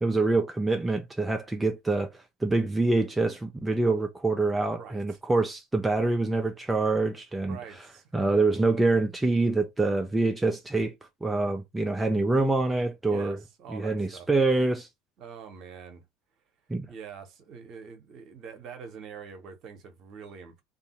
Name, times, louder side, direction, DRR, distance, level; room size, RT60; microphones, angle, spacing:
voice 1, 0.0-7.6 8.1-10.9 11.2-13.4 13.7-14.9 16.7-16.9, right 3 dB, 10° right, 0.4 m, -25 dB
voice 2, 4.7-5.2 7.5-8.0 13.0-14.3 15.2-16.1 16.9-20.6, right 6 dB, 45° right, 0.9 m, -44 dB
2.6 x 2.5 x 2.8 m
figure-of-eight pair, 70°, 0 cm